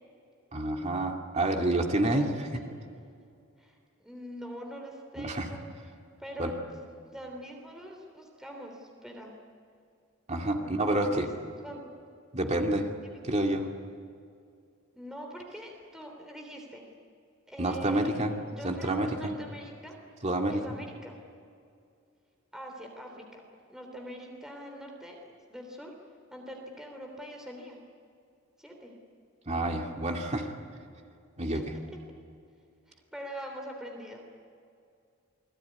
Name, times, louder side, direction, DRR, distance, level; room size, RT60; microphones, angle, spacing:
voice 1, 0.5-2.6 5.2-5.5 6.4-6.5 10.3-11.3 12.3-12.9 13.2-13.7 17.6-18.3 18.6-19.3 20.2-20.6 29.5-30.5 31.4-31.7, right 1 dB, 30° right, 2 dB, 2.4 m, -28 dB
voice 2, 3.6-5.7 6.2-6.6 7.0-9.4 10.6-11.3 11.6-11.8 13.0-13.2 14.9-16.8 17.5-18.2 18.5-19.9 20.5-21.2 22.5-23.4 23.7-25.1 25.5-25.9 26.3-27.8 28.6-28.9 31.5-31.6 32.9-34.3, equal, 5° right, 1 dB, 3.4 m, -43 dB
29.0 x 20.5 x 9.9 m, 2.4 s
head